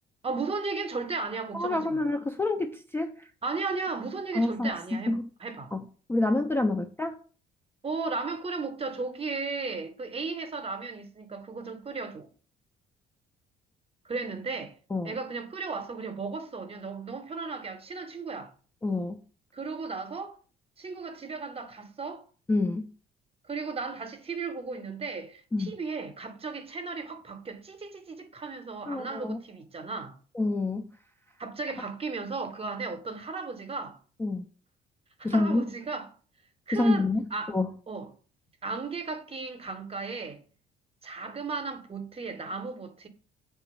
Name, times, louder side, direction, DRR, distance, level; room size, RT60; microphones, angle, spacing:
voice 1, 0.2-2.0 3.4-5.2 5.4-5.7 7.8-12.3 14.0-14.7 15.0-18.5 19.5-20.4 20.8-22.2 23.5-30.1 31.4-34.0 35.2-36.1 36.7-37.0 37.3-37.5 37.9-38.1 38.6-40.4 41.0-43.1, right 4 dB, 30° right, 0.7 m, -35 dB
voice 2, 1.5-3.3 4.3-5.2 5.7-5.8 6.1-7.2 14.9-15.2 18.8-19.2 22.5-22.9 25.5-25.7 28.9-29.4 30.3-30.9 34.2-34.5 35.2-35.7 36.7-37.7, left 2 dB, 10° left, 0.3 m, -27 dB
2.9 x 2.4 x 4.1 m
hypercardioid pair, 55°, 21 cm